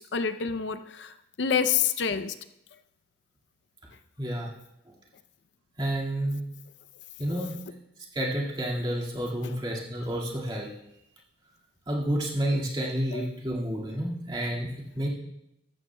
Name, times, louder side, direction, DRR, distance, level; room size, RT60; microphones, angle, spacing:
voice 1, 0.0-2.3 9.4-9.5 13.1-13.3, left 7 dB, 65° left, 11 dB, 0.5 m, -28 dB
voice 2, 4.2-4.5 5.8-6.4 7.2-7.5 8.1-10.7 11.9-14.7 15.0-15.1, right 1 dB, 25° right, -3 dB, 1.9 m, -30 dB
15.0 x 13.0 x 2.2 m, 0.83 s
head